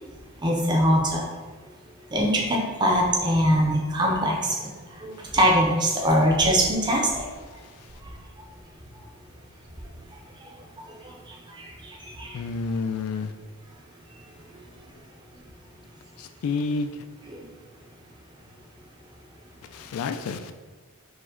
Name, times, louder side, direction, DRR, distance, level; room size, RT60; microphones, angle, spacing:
voice 1, 0.4-1.3 2.1-4.6 4.9-7.3 10.5-10.6 11.0-12.4 17.3-17.4, equal, 20° right, -1 dB, 0.5 m, -23 dB
voice 2, 12.3-13.3 16.2-17.0 19.7-20.5, left 4 dB, 85° left, 9 dB, 0.3 m, -29 dB
4.8 x 2.1 x 3.7 m, 1.4 s
head